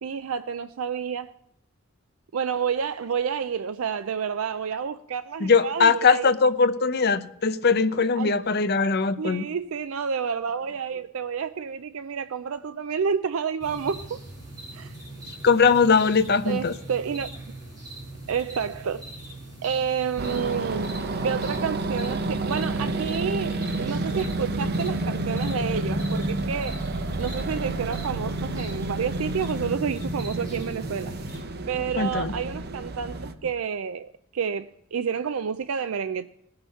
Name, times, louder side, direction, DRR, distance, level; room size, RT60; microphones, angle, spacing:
voice 1, 0.0-1.3 2.3-6.3 8.2-8.3 9.2-14.2 14.7-14.9 16.4-17.3 18.3-19.0 19.6-21.0 21.2-26.8 27.2-31.1 31.7-36.3, right 6 dB, 90° right, 0.5 m, -29 dB
voice 2, 5.4-9.4 15.4-16.7 32.0-32.3, left 5 dB, 50° left, 0.7 m, -21 dB
sound 1, 13.6-31.4, right 1 dB, 20° right, 4.9 m, -40 dB
sound 2, 20.2-33.3, right 2 dB, 50° right, 0.9 m, -30 dB
17.5 x 6.7 x 5.6 m
head